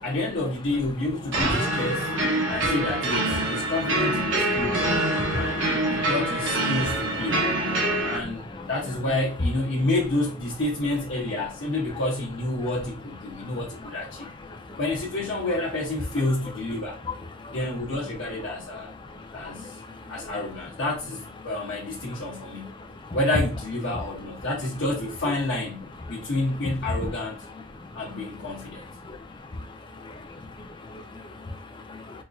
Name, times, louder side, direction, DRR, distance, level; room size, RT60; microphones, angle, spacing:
voice 1, 0.0-2.1 2.5-4.8 5.3-7.4 8.0-14.3 14.8-17.0 17.5-18.9 19.3-19.8 20.1-22.7 23.1-27.4 27.9-28.8, left 2 dB, 85° left, 0.9 m, -29 dB
sound 1, 1.3-8.2, right 1 dB, 75° right, 1.1 m, -25 dB
voice 2, 30.0-32.2, left 2 dB, 25° left, 0.5 m, -39 dB
4.2 x 2.5 x 2.3 m
head